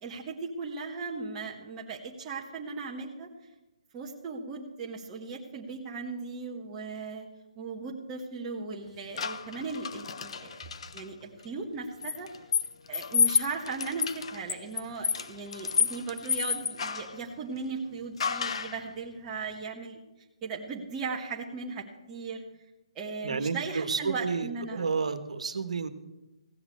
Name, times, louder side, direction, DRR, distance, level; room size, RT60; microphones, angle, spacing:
voice 1, 0.0-3.3 3.9-7.3 7.6-10.6 10.9-12.3 12.9-20.0 20.4-22.4 22.9-24.9, right 4 dB, 20° right, -3 dB, 1.2 m, -37 dB
sound 1, 9.2-11.0 12.0-17.2 18.2-18.8, left 6 dB, 55° left, 0.8 m, -30 dB
voice 2, 23.2-25.9, right 5 dB, 75° right, 10 dB, 1.4 m, -31 dB
16.0 x 7.2 x 8.4 m, 1.0 s
hypercardioid pair, 160°, 4 cm